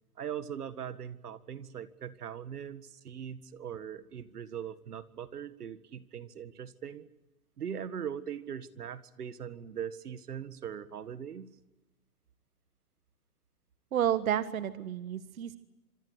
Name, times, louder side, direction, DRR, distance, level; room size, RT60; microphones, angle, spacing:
voice 1, 0.2-7.1 7.6-11.5, right 8 dB, 80° right, 14 dB, 1.8 m, -40 dB
voice 2, 13.9-15.6, right 10 dB, 65° right, 12 dB, 1.5 m, -30 dB
26.5 x 22.5 x 8.0 m, 1.1 s
hypercardioid pair, 150°, 45 cm